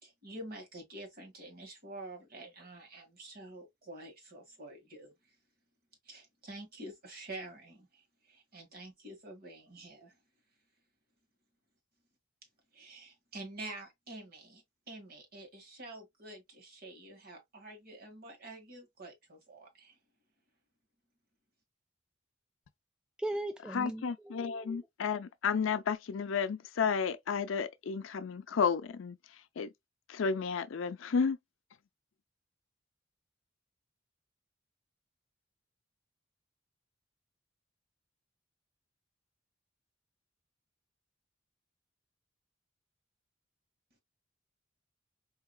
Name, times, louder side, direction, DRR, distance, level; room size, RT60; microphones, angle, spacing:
voice 1, 0.0-5.3 6.0-10.2 12.7-20.0, right 2 dB, 50° right, 1.7 m, -48 dB
voice 2, 23.2-24.8, right 1 dB, 5° right, 0.3 m, -38 dB
voice 3, 23.7-29.2 29.6-29.7 30.1-31.4, left 6 dB, 75° left, 0.5 m, -32 dB
4.7 x 2.8 x 2.2 m
head